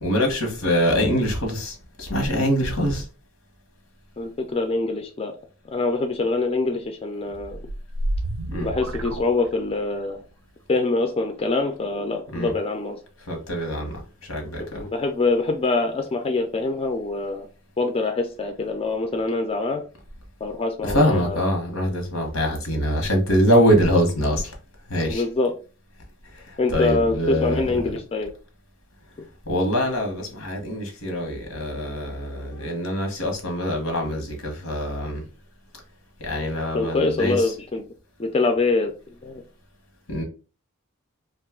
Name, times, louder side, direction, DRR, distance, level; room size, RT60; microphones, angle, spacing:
voice 1, 0.0-3.0 8.5-8.7 12.3-12.5 13.3-14.8 20.8-24.5 24.9-25.2 26.5-27.6 29.5-35.2 36.2-37.5 40.1-40.2, equal, 85° left, 1.0 m, -24 dB
voice 2, 4.2-5.3 5.7-7.6 8.6-10.2 10.7-13.0 14.6-17.5 17.8-19.8 20.4-21.4 25.1-25.5 26.6-28.3 36.7-37.8 38.2-38.9 39.2-39.4, left 3 dB, 30° left, 0.3 m, -24 dB
sound 1, 7.3-10.0, right 1 dB, 80° right, 0.5 m, -30 dB
2.6 x 2.3 x 3.6 m
head